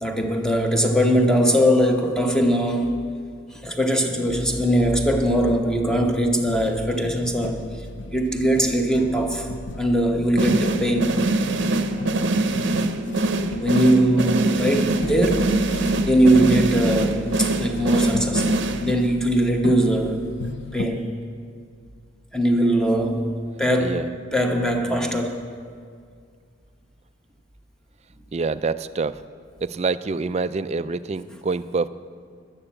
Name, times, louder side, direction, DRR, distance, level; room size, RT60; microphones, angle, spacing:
voice 1, 0.0-3.0 3.5-7.7 8.1-9.5 9.8-11.2 13.6-15.7 16.0-20.2 20.7-21.1 22.3-23.3 23.6-25.5, right 1 dB, 5° left, 2 dB, 1.1 m, -21 dB
sound 1, 6.4-20.9, left 2 dB, 60° left, 0.5 m, -36 dB
sound 2, 10.4-19.2, right 2 dB, 60° right, 0.7 m, -23 dB
voice 2, 24.9-25.2 28.3-29.2 29.6-31.9, right 4 dB, 30° right, 13 dB, 0.3 m, -26 dB
12.0 x 8.9 x 8.5 m, 2.1 s
head